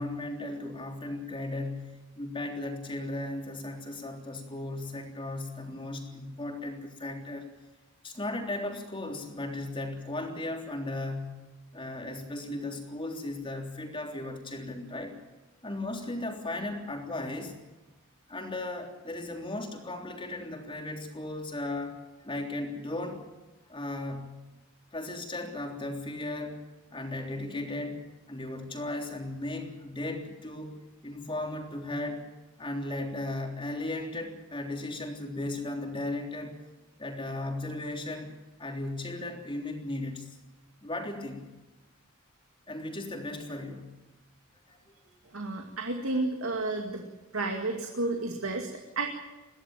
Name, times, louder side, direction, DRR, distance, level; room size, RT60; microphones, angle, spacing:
voice 1, 0.0-7.5 8.0-11.4 11.7-15.1 15.6-17.6 18.3-22.0 22.2-23.2 23.7-24.4 24.9-26.6 26.9-30.8 31.0-32.2 32.6-36.6 37.0-38.3 38.6-40.3 40.8-41.5 42.7-43.9 44.7-44.8 45.1-45.2 46.1-46.2, left 2 dB, 25° left, 3 dB, 3.5 m, -36 dB
voice 2, 45.3-47.0 47.3-49.1, right 2 dB, 70° right, 2 dB, 2.4 m, -31 dB
22.5 x 16.0 x 9.1 m, 1.1 s
head